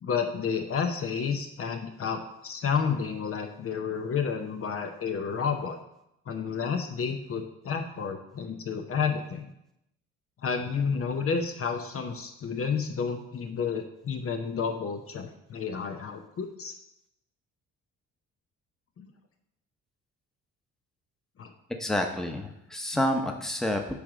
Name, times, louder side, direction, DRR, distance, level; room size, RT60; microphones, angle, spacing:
voice 1, 0.0-5.8 6.3-9.5 10.4-16.7 19.0-19.1 21.4-21.5, left 6 dB, 50° left, 5 dB, 0.8 m, -31 dB
voice 2, 21.8-24.0, left 1 dB, ahead, 3 dB, 0.9 m, -29 dB
8.4 x 3.2 x 5.0 m, 0.83 s
cardioid pair, 90°, 30 cm